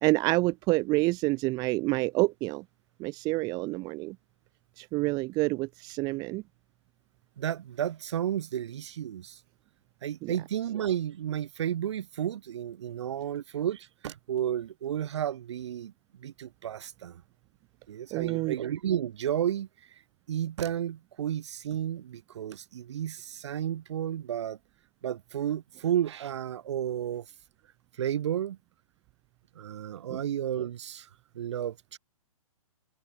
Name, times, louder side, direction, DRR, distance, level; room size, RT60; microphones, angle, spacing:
voice 1, 0.0-2.6 3.0-4.2 4.8-6.4 10.2-10.3 18.1-18.6 30.1-30.2, right 23 dB, 20° right, 1.7 m, -28 dB
voice 2, 7.4-9.4 10.0-15.9 16.2-17.2 17.9-19.7 20.3-24.6 25.0-27.3 28.0-28.6 29.6-31.1 31.3-32.0, right 10 dB, 50° right, 3.6 m, -32 dB
open air
hypercardioid pair, 155°, 18 cm